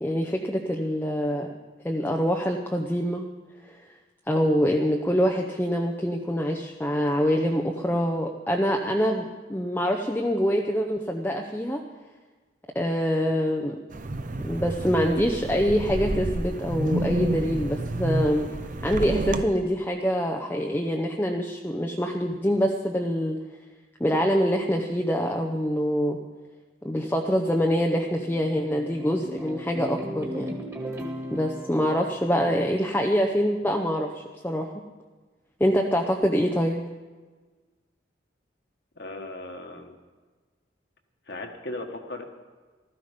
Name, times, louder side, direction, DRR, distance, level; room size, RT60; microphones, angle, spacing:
voice 1, 0.0-1.5 1.8-3.3 3.6-3.8 4.3-11.8 12.7-13.8 14.4-18.5 18.8-23.4 24.0-26.2 26.8-30.6 31.3-34.7 35.6-36.8, equal, 10° left, 1 dB, 0.7 m, -25 dB
Wind, 13.9-19.4, right 2 dB, 40° right, 0.6 m, -29 dB
sound 1, 27.7-33.1, equal, 15° right, 1.9 m, -38 dB
voice 2, 39.0-40.0 41.3-42.3, left 2 dB, 55° left, 4 dB, 1.5 m, -37 dB
15.5 x 13.5 x 5.1 m, 1.3 s
head